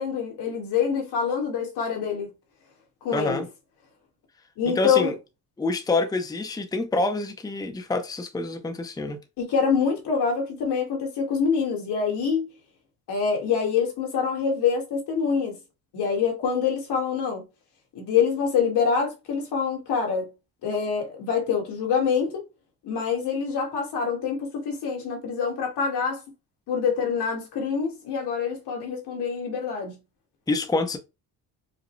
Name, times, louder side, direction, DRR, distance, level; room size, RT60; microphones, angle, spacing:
voice 1, 0.0-2.3 3.0-3.4 4.6-5.1 9.4-12.5 13.1-15.6 15.9-17.4 17.9-20.3 20.6-22.4 22.8-26.2 26.7-30.0, left 6 dB, 75° left, 1.6 m, -25 dB
voice 2, 3.1-3.5 4.8-5.1 5.6-9.2 30.5-31.0, left 2 dB, 10° left, 0.6 m, -27 dB
5.0 x 2.1 x 3.1 m
cardioid pair, 105°, 40 cm